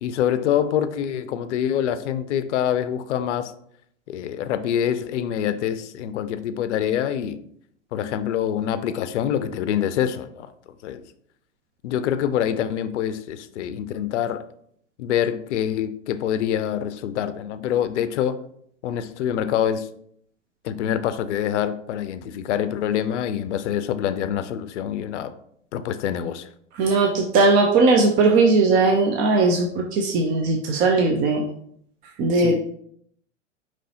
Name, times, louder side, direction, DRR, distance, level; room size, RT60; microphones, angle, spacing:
voice 1, 0.0-3.5 4.1-7.4 7.9-10.5 10.8-11.0 11.8-14.4 15.0-18.4 18.8-19.9 20.6-25.3 25.7-26.5 32.4-32.6, left 9 dB, 65° left, 12 dB, 0.5 m, -25 dB
voice 2, 26.8-31.4 32.2-32.6, right 3 dB, 25° right, 1 dB, 0.4 m, -18 dB
5.2 x 3.1 x 2.8 m, 0.68 s
hypercardioid pair, 105°, 38 cm